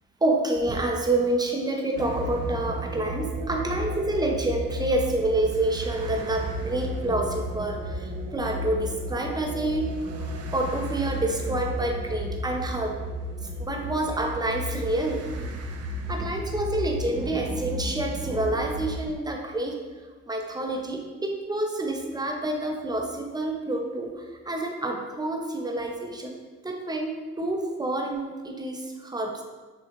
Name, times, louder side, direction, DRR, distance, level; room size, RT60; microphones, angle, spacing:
voice 1, 0.2-9.9 10.2-13.0 13.6-15.6 16.0-19.8 20.3-26.4 26.6-29.4, right 2 dB, 15° right, 1 dB, 0.7 m, -28 dB
sound 1, 2.0-19.1, equal, 55° right, 0.6 m, -33 dB
6.5 x 2.3 x 3.0 m, 1.3 s
cardioid pair, 90°, 30 cm